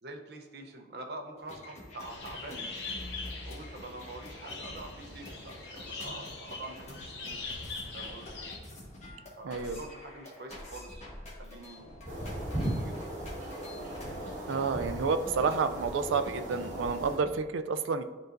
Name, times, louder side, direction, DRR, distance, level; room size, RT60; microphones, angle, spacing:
voice 1, 0.0-2.6 3.4-7.5 7.9-8.5 9.4-12.2 12.5-13.2, right 2 dB, 55° right, 2 dB, 0.8 m, -46 dB
sound 1, 1.4-17.3, left 1 dB, 35° left, 1.3 m, -47 dB
sound 2, 2.0-8.6, left 3 dB, 70° left, 1.1 m, -42 dB
voice 2, 9.4-9.8 14.5-18.0, right 5 dB, 90° right, 8 dB, 0.4 m, -30 dB
sound 3, 12.1-17.2, right 1 dB, 40° right, 1.5 m, -37 dB
10.0 x 3.9 x 2.6 m, 1.4 s
head